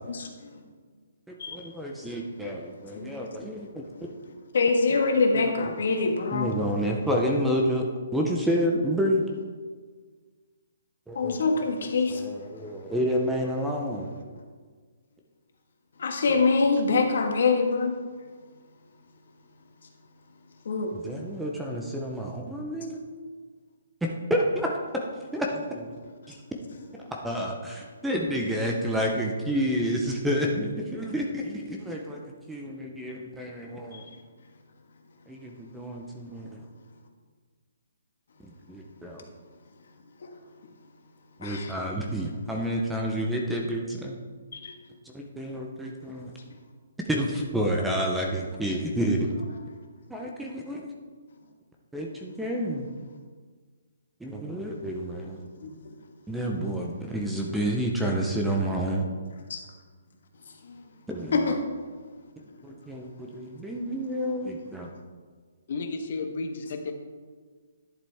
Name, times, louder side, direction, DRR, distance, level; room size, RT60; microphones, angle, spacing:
voice 1, 0.1-0.6 1.4-1.7 2.9-3.6 4.5-6.5 11.1-12.2 16.0-17.9 20.6-21.0 33.9-34.0 40.2-40.3 41.4-41.7 44.5-44.7 55.6-55.7 59.5-59.6 60.7-60.8 61.3-61.6, left 4 dB, 65° left, 3 dB, 1.5 m, -25 dB
voice 2, 1.3-4.1 4.9-5.0 5.3-5.5 6.3-7.9 8.1-9.2 11.1-11.4 12.1-14.1 16.3-16.4 20.9-23.0 24.0-24.7 25.3-25.9 26.3-26.4 27.2-32.2 32.5-34.0 35.3-36.6 38.7-39.3 41.4-44.2 45.1-46.3 47.1-49.3 50.1-50.8 51.9-52.9 54.2-55.4 56.3-59.0 61.1-61.5 62.6-64.9, equal, 5° right, 0 dB, 0.7 m, -29 dB
voice 3, 65.7-66.9, left 3 dB, 45° left, 5 dB, 1.1 m, -32 dB
11.5 x 7.4 x 3.5 m, 1.5 s
hypercardioid pair, 165°, 0 cm